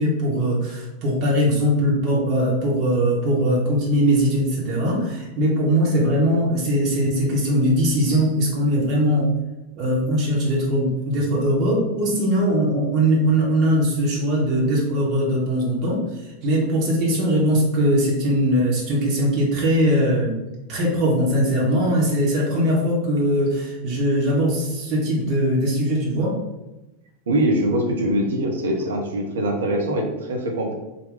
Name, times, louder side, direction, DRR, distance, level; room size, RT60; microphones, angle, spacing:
voice 1, 0.0-9.3 9.8-20.4 20.7-26.4, equal, 35° right, -4 dB, 0.9 m, -21 dB
voice 2, 27.3-30.7, right 1 dB, 65° right, 1 dB, 0.7 m, -23 dB
3.8 x 2.2 x 3.6 m, 1.0 s
figure-of-eight pair, 90°, 0 cm